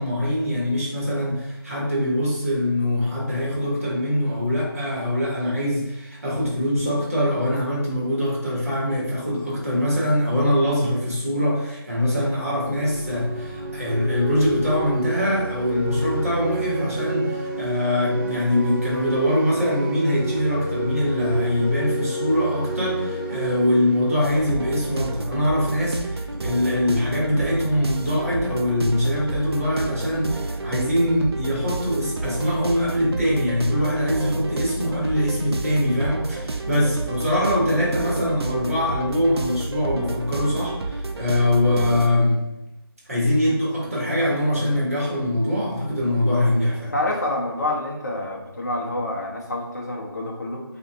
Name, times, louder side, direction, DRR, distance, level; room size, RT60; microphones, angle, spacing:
voice 1, 0.0-42.4 43.1-46.9, left 1 dB, 35° right, -6 dB, 1.2 m, -23 dB
sound 1, 12.6-25.3, right 2 dB, ahead, 1.5 m, -30 dB
sound 2, 24.2-42.1, right 2 dB, 85° right, 0.4 m, -30 dB
voice 2, 46.9-50.6, left 1 dB, 45° left, -1 dB, 0.6 m, -27 dB
3.8 x 2.5 x 2.7 m, 0.92 s
figure-of-eight pair, 175°, 13 cm